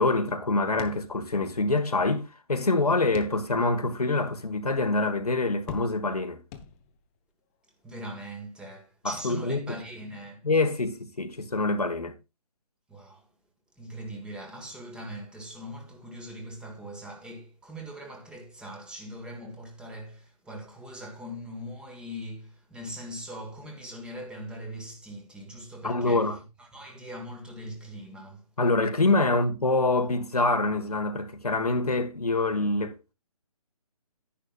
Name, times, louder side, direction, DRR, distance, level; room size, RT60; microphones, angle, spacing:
voice 1, 0.0-6.4 9.0-9.7 10.4-12.1 25.8-26.4 28.6-33.0, left 2 dB, 85° left, 1.5 m, -25 dB
sound 1, 0.8-1.7 2.0-2.1 3.1-3.8 4.3-4.4 5.7-6.2 6.5-7.2, left 7 dB, 20° left, 0.9 m, -42 dB
voice 2, 7.8-10.5 12.9-13.3 13.8-28.5, equal, 5° right, 1.5 m, -41 dB
10.5 x 10.0 x 2.4 m
figure-of-eight pair, 140°, 19 cm